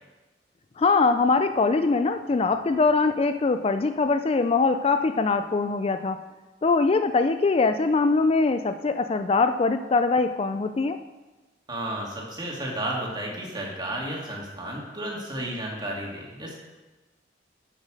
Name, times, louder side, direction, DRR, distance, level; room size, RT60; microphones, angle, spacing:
voice 1, 0.8-6.2 6.6-11.0, left 4 dB, 35° left, 9 dB, 0.4 m, -22 dB
voice 2, 11.7-16.5, right 1 dB, 25° right, -2 dB, 2.6 m, -32 dB
10.0 x 7.3 x 6.5 m, 1.2 s
head